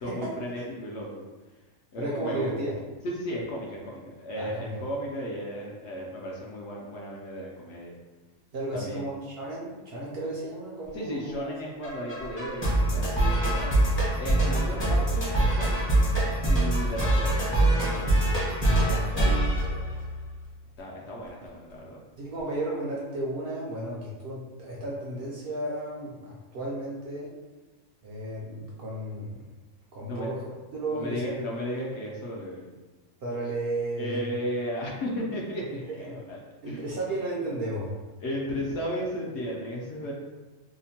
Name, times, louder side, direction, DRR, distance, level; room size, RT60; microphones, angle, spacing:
voice 1, 0.0-1.2 1.9-2.5 3.0-7.9 8.7-9.0 10.9-13.8 14.2-15.8 16.4-18.1 20.8-22.0 30.1-30.3 30.9-32.7 34.0-36.4 36.7-36.8 38.2-40.1, equal, 65° left, -3 dB, 0.7 m, -35 dB
voice 2, 2.0-2.8 4.4-4.7 8.5-9.1 9.4-11.3 13.5-13.7 14.4-14.8 16.8-16.9 18.8-19.9 22.2-27.3 28.0-29.4 29.9-30.4 30.7-31.8 33.2-34.2 35.9-36.2 36.6-38.0, right 1 dB, 60° right, -5 dB, 0.7 m, -34 dB
sound 1, 11.8-20.4, right 1 dB, 30° left, 0.6 m, -24 dB
2.8 x 2.1 x 2.7 m, 1.2 s
omnidirectional pair, 1.4 m